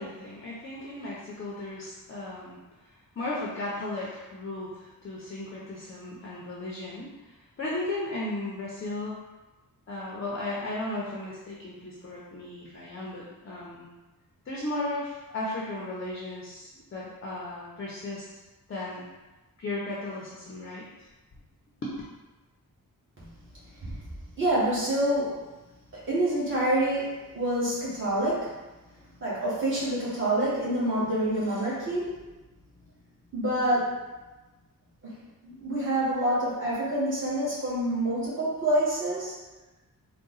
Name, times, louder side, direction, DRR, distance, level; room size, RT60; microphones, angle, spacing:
voice 1, 0.0-2.6 3.2-9.2 9.9-13.9 14.5-18.3 18.7-19.1 19.6-21.1 21.8-21.9, left 2 dB, 35° left, -5 dB, 0.6 m, -35 dB
voice 2, 24.4-25.5 25.9-28.5 29.2-32.2 33.3-34.0 35.0-35.1 35.4-39.3, right 1 dB, 35° right, -9 dB, 1.5 m, -27 dB
3.8 x 2.1 x 3.9 m, 1.1 s
wide cardioid pair, 175°, 35 cm